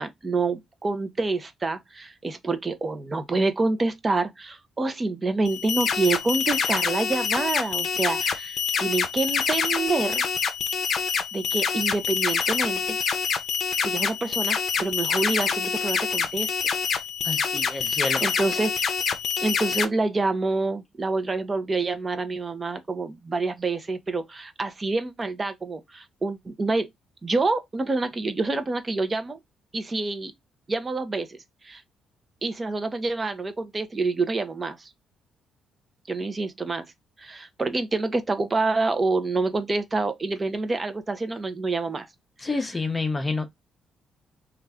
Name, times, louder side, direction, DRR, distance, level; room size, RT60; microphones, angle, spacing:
voice 1, 0.0-10.2 11.3-13.0 13.8-16.5 17.7-17.9 18.2-18.9 19.4-26.9 27.2-29.4 29.7-30.3 30.7-31.8 32.4-34.9 36.1-36.9 37.2-42.1, right 3 dB, 30° right, 0.7 m, -27 dB
sound 1, 5.4-19.8, left 6 dB, 60° left, 0.6 m, -26 dB
voice 2, 17.2-18.2 42.4-43.5, left 3 dB, 25° left, 0.6 m, -28 dB
3.1 x 2.4 x 3.4 m
cardioid pair, 90°, 0 cm